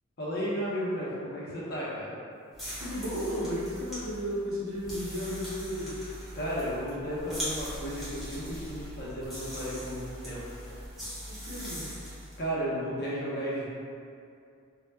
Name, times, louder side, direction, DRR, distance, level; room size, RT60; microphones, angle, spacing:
voice 1, 0.2-2.1 6.3-10.4 12.4-13.7, equal, 50° left, -7 dB, 0.7 m, -33 dB
sound 1, 2.5-12.4, equal, ahead, 0.7 m, -40 dB
voice 2, 2.8-6.0 11.3-12.0, equal, 80° right, -5 dB, 0.6 m, -34 dB
2.2 x 2.1 x 3.2 m, 2.4 s
head